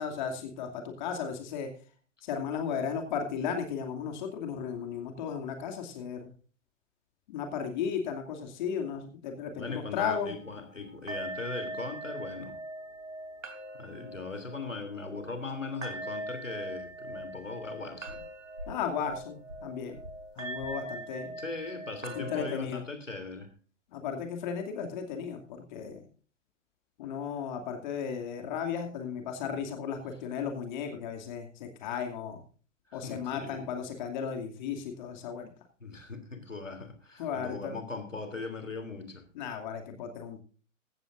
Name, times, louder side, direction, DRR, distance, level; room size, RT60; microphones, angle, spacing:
voice 1, 0.0-1.7 2.2-6.3 7.3-10.3 18.7-20.0 20.4-21.3 22.1-22.8 23.9-26.0 27.0-32.4 32.9-35.5 37.2-37.8 39.3-40.4, left 7 dB, 40° left, 4 dB, 2.5 m, -35 dB
voice 2, 9.5-12.6 13.8-18.2 21.4-23.5 32.9-33.7 35.8-39.2, left 3 dB, 80° left, 8 dB, 3.2 m, -39 dB
sound 1, 10.3-22.6, right 1 dB, 85° right, 3.4 m, -42 dB
16.0 x 13.5 x 2.5 m, 0.39 s
figure-of-eight pair, 120°, 37 cm